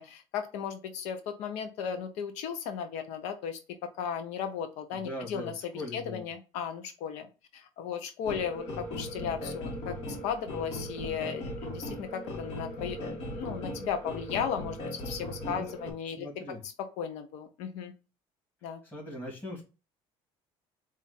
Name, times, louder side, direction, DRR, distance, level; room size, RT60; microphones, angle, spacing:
voice 1, 0.0-17.9 18.6-18.8, left 7 dB, 85° left, 7 dB, 0.6 m, -36 dB
voice 2, 4.9-6.3 15.4-15.7 16.2-16.6 18.9-19.6, left 1 dB, 15° left, -2 dB, 2.0 m, -40 dB
Grunting beat - baseline, 8.3-15.9, left 1 dB, 60° left, 1.6 m, -38 dB
4.2 x 2.5 x 4.0 m, 0.32 s
cardioid pair, 140°, 11 cm